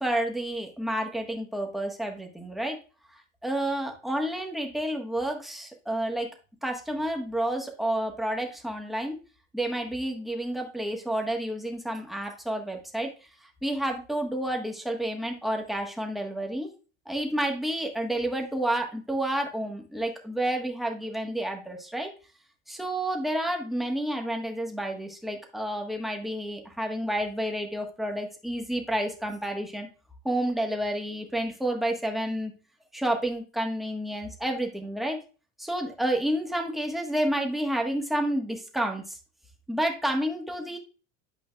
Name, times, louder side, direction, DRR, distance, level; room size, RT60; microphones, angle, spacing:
voice 1, 0.0-2.8 3.4-6.3 6.6-9.2 9.5-13.1 13.6-16.7 17.0-22.1 22.7-29.9 30.2-32.5 32.9-35.2 35.6-39.2 39.7-40.8, right 1 dB, ahead, 1 dB, 1.4 m, -30 dB
9.1 x 5.1 x 2.4 m, 0.35 s
hypercardioid pair, 75°, 39 cm